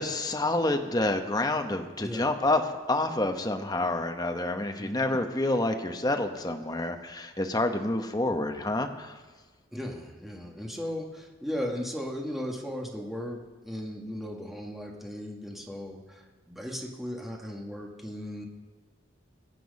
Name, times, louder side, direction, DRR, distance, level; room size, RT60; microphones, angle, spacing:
voice 1, 0.0-2.6 2.9-9.1, left 2 dB, 20° left, 5 dB, 1.0 m, -28 dB
voice 2, 4.8-5.2 9.7-18.5, equal, ahead, -1 dB, 1.6 m, -37 dB
22.5 x 7.8 x 5.3 m, 1.3 s
head